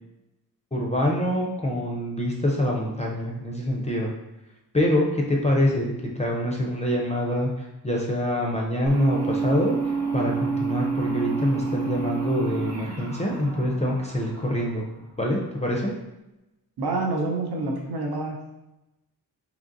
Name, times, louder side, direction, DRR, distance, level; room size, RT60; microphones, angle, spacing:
voice 1, 0.7-4.1 4.7-14.9 15.2-15.9, left 1 dB, 20° left, -2 dB, 0.4 m, -25 dB
sound 1, 8.9-15.2, right 5 dB, 45° right, 0.6 m, -29 dB
voice 2, 16.8-18.4, right 2 dB, 85° right, 0 dB, 0.8 m, -27 dB
3.8 x 2.9 x 2.5 m, 0.94 s
wide cardioid pair, 160°, 37 cm